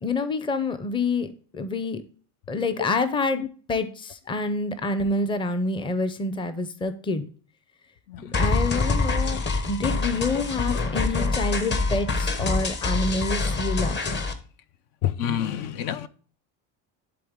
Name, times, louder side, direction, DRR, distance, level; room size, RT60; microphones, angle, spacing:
voice 1, 0.0-2.0 2.5-7.3 8.3-9.4 9.6-14.0, left 3 dB, 15° left, 11 dB, 0.6 m, -27 dB
sound 1, 8.3-14.3, left 3 dB, 30° left, 1.0 m, -25 dB
voice 2, 15.0-16.1, left 10 dB, 65° left, 14 dB, 0.7 m, -28 dB
11.0 x 3.9 x 3.6 m, 0.42 s
cardioid pair, 145°, 37 cm